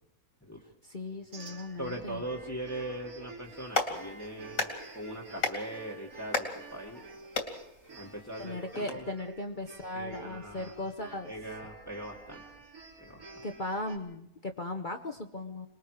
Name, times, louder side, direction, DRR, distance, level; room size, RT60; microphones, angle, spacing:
voice 1, 0.8-2.3 8.4-11.3 13.4-15.7, left 2 dB, 40° left, 4 dB, 1.1 m, -37 dB
sound 1, 1.3-14.0, right 3 dB, 80° right, 3.8 m, -50 dB
voice 2, 1.8-7.0 8.0-9.1 9.9-10.7 11.3-12.4 13.0-13.4, right 1 dB, 10° left, -2 dB, 1.7 m, -40 dB
Clapping, 3.4-8.9, left 3 dB, 70° left, 3.0 m, -36 dB
25.5 x 20.5 x 4.9 m, 0.79 s
omnidirectional pair, 1.5 m